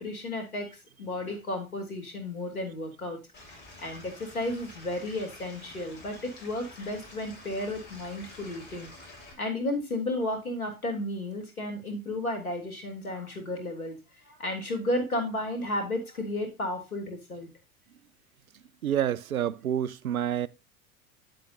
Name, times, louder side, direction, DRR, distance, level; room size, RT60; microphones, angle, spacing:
voice 1, 0.0-3.2 3.8-8.9 9.4-14.0 14.2-17.5, left 1 dB, 85° left, 3.0 m, -33 dB
Stream / Liquid, 3.3-9.3, left 2 dB, 25° left, 4.8 m, -48 dB
voice 2, 18.8-20.5, right 10 dB, 80° right, 0.6 m, -28 dB
9.9 x 7.6 x 2.7 m
figure-of-eight pair, 85°, 42 cm